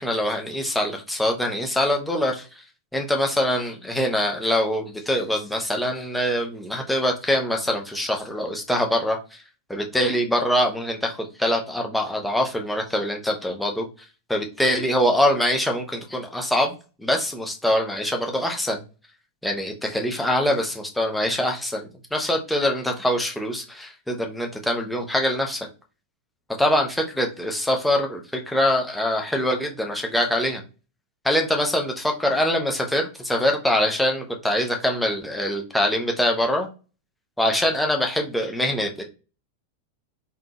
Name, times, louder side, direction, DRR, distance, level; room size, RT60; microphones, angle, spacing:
voice 1, 0.0-2.4 2.9-9.2 9.7-13.9 14.3-16.7 17.0-18.8 19.4-25.7 26.6-28.2 28.5-30.6 31.2-36.7 37.4-39.0, left 1 dB, 5° left, 1 dB, 0.7 m, -24 dB
3.6 x 2.8 x 2.4 m, 0.33 s
figure-of-eight pair, 90°, 0 cm